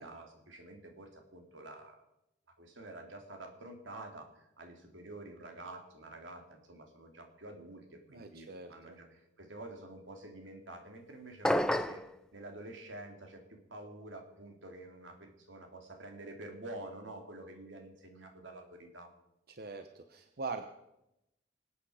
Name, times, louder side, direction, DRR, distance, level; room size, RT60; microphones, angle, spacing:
voice 1, 0.0-2.0 2.6-19.1, right 1 dB, 90° right, 3 dB, 2.7 m, -48 dB
voice 2, 8.1-9.0 19.5-20.6, right 4 dB, 55° right, 7 dB, 0.9 m, -42 dB
sound 1, 11.4-12.1, left 1 dB, 5° left, 0.5 m, -29 dB
25.5 x 8.6 x 4.9 m, 0.89 s
head